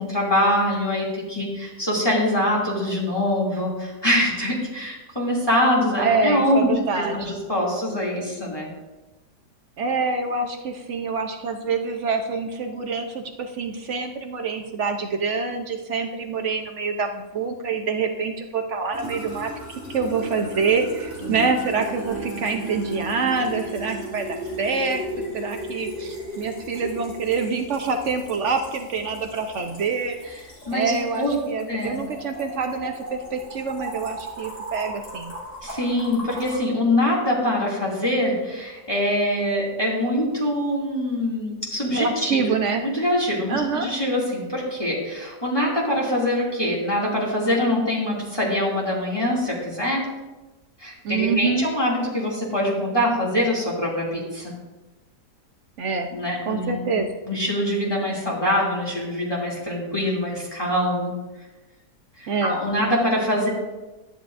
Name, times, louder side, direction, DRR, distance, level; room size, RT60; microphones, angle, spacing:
voice 1, 0.0-6.7 7.0-8.7 21.2-21.4 30.7-30.9 31.2-31.4 31.7-32.0 35.6-42.5 42.8-50.0 50.8-54.5 56.1-56.7 57.2-61.1 62.2-63.5, left 1 dB, 15° left, -5 dB, 2.4 m, -24 dB
voice 2, 6.0-7.4 9.8-19.5 19.9-25.0 25.3-30.2 30.7-35.3 41.9-42.8 43.5-43.9 51.0-51.7 55.8-56.1 56.5-57.1 62.3-62.6, right 4 dB, 60° right, 5 dB, 0.8 m, -26 dB
sound 1, 18.9-36.6, equal, 45° left, 3.1 m, -36 dB
sound 2, 21.2-27.1 27.6-27.8 28.1-28.4, right 5 dB, 65° left, 3.7 m, -41 dB
12.0 x 10.0 x 2.6 m, 1.1 s
omnidirectional pair, 1.8 m